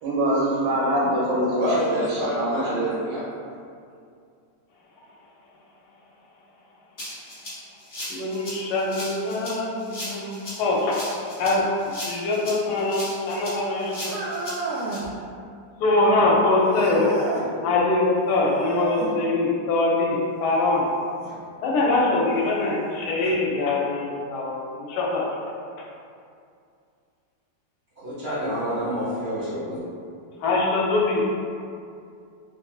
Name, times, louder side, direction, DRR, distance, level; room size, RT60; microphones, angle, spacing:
voice 1, 0.0-2.9, right 1 dB, 75° right, -7 dB, 1.1 m, -24 dB
voice 2, 1.6-3.2 28.0-29.8, equal, 50° right, -10 dB, 0.7 m, -28 dB
Rattle (instrument), 7.0-15.0, left 1 dB, 35° left, 1.2 m, -37 dB
voice 3, 8.1-11.0 11.4-11.7 12.1-14.1 15.8-20.8 21.6-25.3 30.4-31.3, left 2 dB, 75° left, -3 dB, 1.1 m, -23 dB
sound 1, 14.0-15.1 16.7-17.5 18.5-19.2 21.2-21.3 22.2-22.3 23.3-23.4, right 1 dB, 20° left, 0.6 m, -30 dB
3.2 x 2.4 x 2.3 m, 2.4 s
omnidirectional pair, 1.9 m